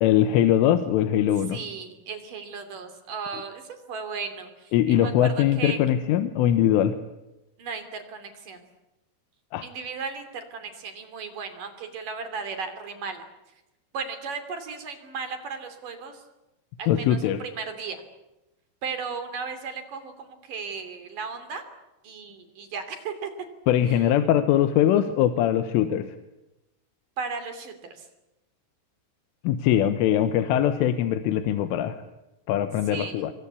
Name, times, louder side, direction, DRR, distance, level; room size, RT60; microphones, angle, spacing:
voice 1, 0.0-1.6 4.7-7.0 9.5-9.7 16.9-17.4 23.7-26.2 29.5-32.0 32.5-33.3, left 11 dB, 75° left, 9 dB, 3.5 m, -22 dB
voice 2, 1.5-5.8 7.6-8.6 9.6-13.2 13.9-16.2 16.8-17.2 17.4-18.0 18.8-21.6 22.0-23.3 23.8-24.1 27.2-28.1 32.9-33.3, right 5 dB, 45° right, 8 dB, 3.9 m, -35 dB
26.0 x 24.5 x 8.4 m, 0.97 s
omnidirectional pair, 5.9 m